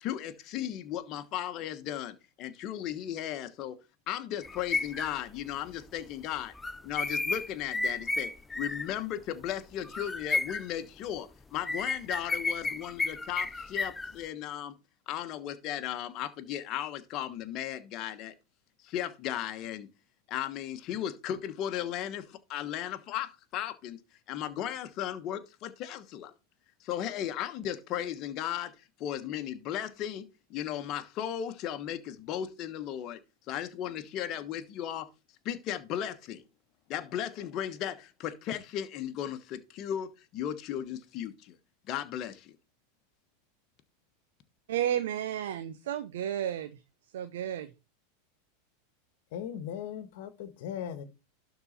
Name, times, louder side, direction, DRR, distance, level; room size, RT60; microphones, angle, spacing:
voice 1, 0.0-3.8 4.1-6.5 6.8-14.7 15.1-18.3 18.8-19.9 20.3-24.0 24.3-26.3 26.8-28.7 29.0-30.2 30.5-33.2 33.5-35.1 35.4-36.4 36.9-41.6 41.9-42.5, left 11 dB, 45° left, 1.2 m, -36 dB
sound 1, 4.4-5.2 6.5-8.9 9.5-9.6 9.8-10.7 11.6-14.2, left 3 dB, 10° left, 0.5 m, -32 dB
voice 2, 44.7-46.7 47.1-47.7, right 10 dB, 70° right, 0.7 m, -32 dB
voice 3, 49.3-51.0, left 9 dB, 60° left, 1.3 m, -38 dB
12.0 x 4.1 x 4.1 m
hypercardioid pair, 95°, 0 cm